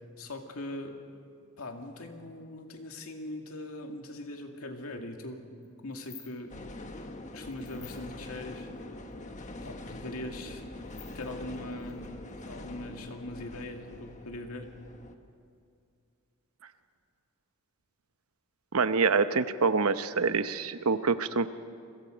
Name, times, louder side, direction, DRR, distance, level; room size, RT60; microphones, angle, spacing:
voice 1, 0.2-0.9 1.6-5.4 5.8-6.5 7.3-8.7 9.6-10.6 11.1-12.0 12.5-14.7, left 1 dB, 85° left, 3 dB, 2.3 m, -41 dB
sound 1, 5.6-5.7 5.9-6.3 7.4-8.0 9.1-9.2 9.4-9.5 10.3-10.4 10.8-12.3, left 12 dB, 65° left, 7.7 m, -51 dB
sound 2, 6.5-15.1, left 1 dB, 35° left, 1.4 m, -44 dB
voice 2, 18.7-21.5, right 4 dB, 85° right, 11 dB, 0.9 m, -26 dB
29.5 x 22.0 x 5.2 m, 2.3 s
head